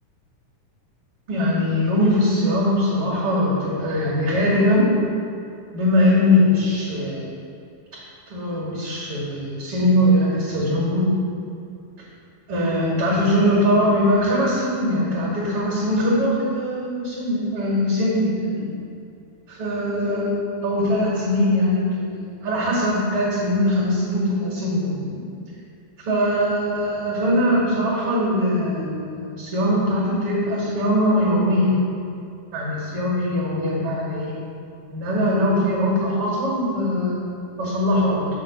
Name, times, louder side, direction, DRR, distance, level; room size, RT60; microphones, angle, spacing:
voice 1, 1.3-4.9 5.7-7.3 8.3-11.1 12.5-18.7 19.6-22.0 22.4-25.2 26.0-32.0 32.5-34.4 34.9-38.3, left 1 dB, 45° right, -6 dB, 2.4 m, -21 dB
7.6 x 4.1 x 6.8 m, 2.5 s
omnidirectional pair, 3.9 m